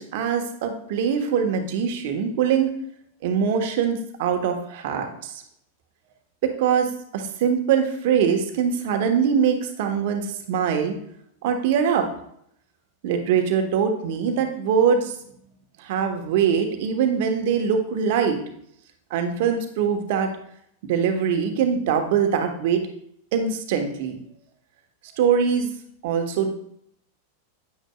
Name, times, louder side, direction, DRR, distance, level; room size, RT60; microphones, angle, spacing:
voice 1, 0.0-2.7 3.2-5.4 6.4-11.0 11.4-12.1 13.0-15.1 15.8-18.4 19.1-20.3 20.8-22.8 23.3-24.2 25.1-25.7 26.0-26.5, right 7 dB, 50° right, 5 dB, 1.2 m, -23 dB
9.4 x 9.1 x 2.3 m, 0.70 s
figure-of-eight pair, 90°, 0 cm